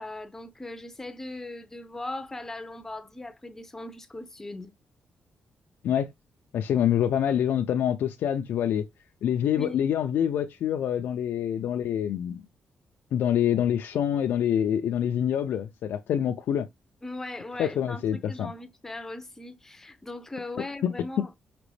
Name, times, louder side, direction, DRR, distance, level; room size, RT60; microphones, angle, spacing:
voice 1, 0.0-4.7 9.6-9.8 17.0-21.3, left 2 dB, 10° left, 0.6 m, -39 dB
voice 2, 6.5-8.8 9.2-12.4 13.1-16.7 17.6-18.5 20.8-21.3, left 9 dB, 80° left, 0.4 m, -26 dB
5.1 x 2.9 x 3.2 m
wide cardioid pair, 150°, 4 cm